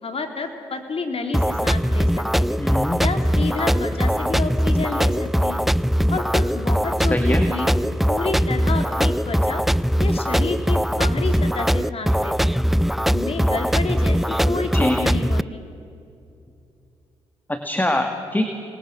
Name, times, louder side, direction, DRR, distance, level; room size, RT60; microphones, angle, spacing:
voice 1, 0.0-2.6 3.0-5.6 6.1-7.7 8.0-9.6 10.0-12.6 13.0-15.6, left 4 dB, 50° left, 5 dB, 3.4 m, -30 dB
sound 1, 1.3-15.4, equal, ahead, 0.5 m, -21 dB
voice 2, 2.6-3.0 7.1-7.5 14.7-15.0 17.5-18.4, left 1 dB, 15° left, 5 dB, 2.3 m, -23 dB
28.0 x 21.0 x 6.2 m, 2.6 s
supercardioid pair, 50°, 12 cm